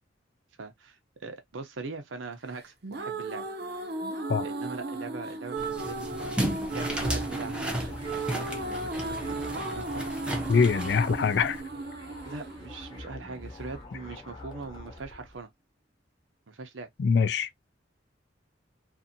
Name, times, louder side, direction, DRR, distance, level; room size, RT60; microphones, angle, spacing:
voice 1, 0.6-3.5 4.4-6.4 6.7-7.9 8.2-9.4 9.7-10.0 10.3-10.5 12.3-15.5 16.5-16.9, right 4 dB, 85° right, 0.7 m, -41 dB
sound 1, 2.6-13.6, right 2 dB, 55° right, 0.5 m, -35 dB
sound 2, 5.6-11.6, right 1 dB, 5° right, 0.5 m, -34 dB
sound 3, 7.2-15.4, left 2 dB, 25° left, 0.9 m, -45 dB
voice 2, 10.5-11.6 17.0-17.5, left 5 dB, 60° left, 0.3 m, -23 dB
2.6 x 2.6 x 2.5 m
head